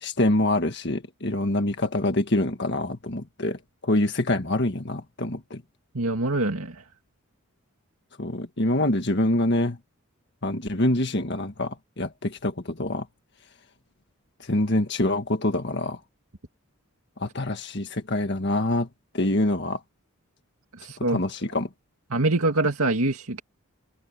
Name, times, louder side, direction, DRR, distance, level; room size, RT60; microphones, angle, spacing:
voice 1, 0.0-5.6 8.2-9.8 10.4-13.1 14.4-16.0 17.2-18.9 19.1-19.8 21.1-21.7, left 1 dB, 50° left, 1.7 m, -25 dB
voice 2, 5.9-6.8 20.7-21.2 22.1-23.4, right 2 dB, 80° right, 2.2 m, -24 dB
open air
head